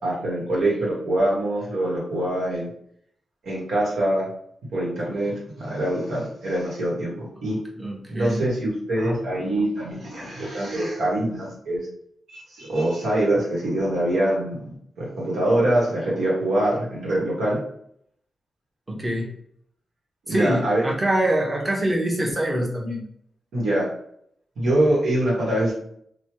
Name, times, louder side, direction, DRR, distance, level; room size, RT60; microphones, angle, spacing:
voice 1, 0.0-2.7 3.4-4.2 4.7-7.6 8.1-11.8 12.3-14.7 15.0-17.6 20.3-20.8 23.5-23.9 24.6-25.7, right 1 dB, 85° right, -5 dB, 1.3 m, -24 dB
voice 2, 7.8-8.4 18.9-19.3 20.3-23.0, right 1 dB, 25° right, -1 dB, 1.0 m, -24 dB
3.1 x 2.3 x 2.9 m, 0.69 s
cardioid pair, 60°, 0 cm